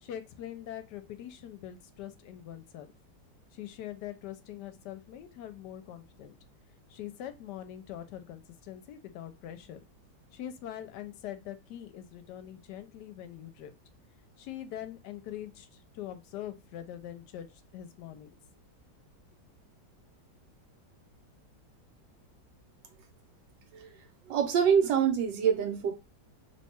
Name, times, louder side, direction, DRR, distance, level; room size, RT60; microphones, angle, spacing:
voice 1, 0.0-2.9 3.5-6.4 6.9-9.8 10.3-13.7 14.4-18.4, left 11 dB, 75° left, 1.1 m, -43 dB
voice 2, 24.3-25.9, right 7 dB, 85° right, 1.4 m, -25 dB
3.1 x 2.2 x 4.2 m
omnidirectional pair, 1.9 m